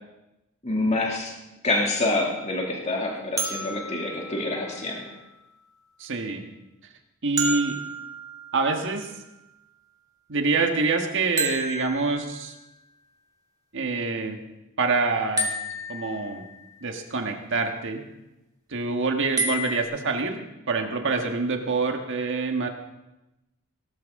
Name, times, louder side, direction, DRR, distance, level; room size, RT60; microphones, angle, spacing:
voice 1, 0.6-1.3 1.6-5.0, left 2 dB, 30° left, -1 dB, 2.3 m, -26 dB
sound 1, 3.4-5.3 7.4-9.2 11.4-12.8 15.4-16.7 19.4-19.8, right 1 dB, 15° right, 1.7 m, -31 dB
voice 2, 6.0-6.4 7.2-7.8 8.5-9.1 10.3-12.5 13.7-14.4 14.8-15.5 15.9-16.4 16.8-18.0 18.7-20.4 20.7-22.7, right 3 dB, 55° right, 4 dB, 1.5 m, -26 dB
18.0 x 12.5 x 3.7 m, 0.96 s
head